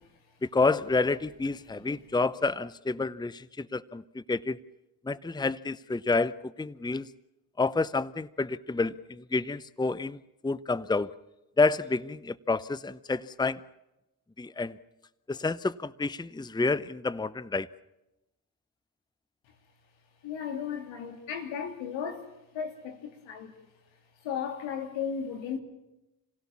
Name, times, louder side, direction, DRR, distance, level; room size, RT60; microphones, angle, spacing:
voice 1, 0.4-4.6 5.1-6.3 6.6-7.1 7.6-11.1 11.6-13.6 14.4-14.7 15.3-17.7, left 3 dB, 10° left, 0.8 m, -29 dB
voice 2, 20.2-22.3 22.5-23.5 24.2-25.6, left 7 dB, 85° left, 2.9 m, -35 dB
28.5 x 17.0 x 7.2 m
hypercardioid pair, 45°, 45 cm